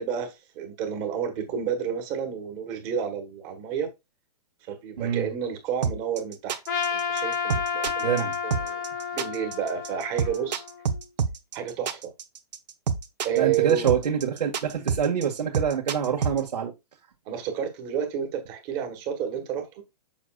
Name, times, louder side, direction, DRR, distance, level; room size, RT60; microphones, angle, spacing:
voice 1, 0.0-3.9 4.6-6.6 6.9-8.8 9.1-10.6 11.5-12.1 13.2-13.9 17.3-19.8, right 8 dB, 20° right, 1.3 m, -30 dB
voice 2, 5.0-5.3 8.0-8.3 13.4-16.7, right 8 dB, 75° right, 1.9 m, -26 dB
sound 1, 5.8-16.4, right 6 dB, 90° right, 1.3 m, -28 dB
Trumpet, 6.7-11.0, left 6 dB, 30° left, 1.0 m, -31 dB
7.0 x 6.7 x 2.4 m
hypercardioid pair, 175°, 21 cm